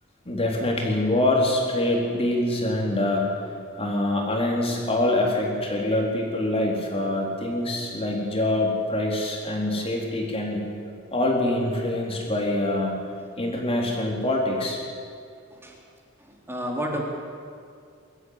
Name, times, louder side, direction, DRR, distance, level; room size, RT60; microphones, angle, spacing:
voice 1, 0.3-3.3 3.8-10.7 11.1-12.9 13.4-14.8, left 1 dB, 30° left, -1 dB, 4.0 m, -25 dB
voice 2, 16.3-17.0, equal, 10° right, 0 dB, 3.6 m, -30 dB
23.0 x 13.5 x 9.8 m, 2.4 s
head